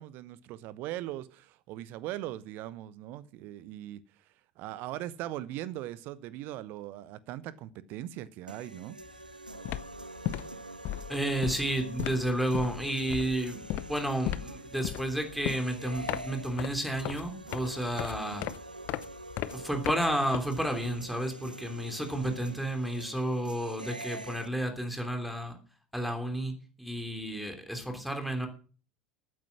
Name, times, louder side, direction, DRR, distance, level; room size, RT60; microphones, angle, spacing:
voice 1, 0.0-4.0 4.6-9.0, right 14 dB, 45° right, 1.0 m, -40 dB
sound 1, 8.5-24.5, right 2 dB, 85° right, 0.7 m, -45 dB
sound 2, 9.0-9.3 9.5-20.9, left 15 dB, 45° left, 0.7 m, -37 dB
voice 2, 11.1-18.4 19.5-25.6 25.9-26.5 26.8-28.5, right 1 dB, ahead, 3.1 m, -31 dB
13.0 x 9.4 x 6.1 m
figure-of-eight pair, 75°, 4 cm